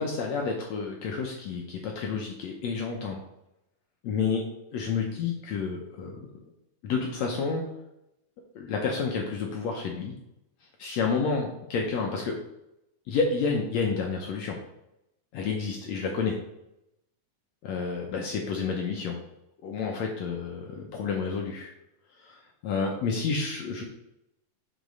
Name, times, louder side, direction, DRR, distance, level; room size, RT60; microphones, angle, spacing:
voice 1, 0.0-3.2 4.0-4.4 4.7-6.3 6.8-7.7 8.5-10.1 10.8-12.4 13.1-14.6 15.3-16.4 17.6-19.2 19.6-21.7 22.2-23.8, left 5 dB, 75° left, 1 dB, 1.6 m, -30 dB
6.6 x 4.0 x 5.2 m, 0.84 s
omnidirectional pair, 3.9 m